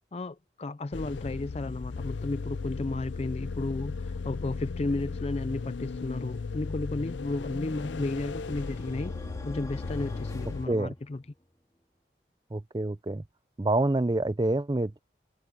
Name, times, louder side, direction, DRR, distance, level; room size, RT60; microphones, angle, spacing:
voice 1, 0.1-9.1 9.4-11.2, left 2 dB, 35° left, 0.4 m, -33 dB
sound 1, 0.9-10.7, left 4 dB, 85° left, 0.5 m, -36 dB
sound 2, 7.1-11.5, left 1 dB, 20° left, 2.3 m, -47 dB
voice 2, 10.4-10.9 12.5-13.2 13.6-15.0, right 2 dB, 25° right, 0.5 m, -27 dB
head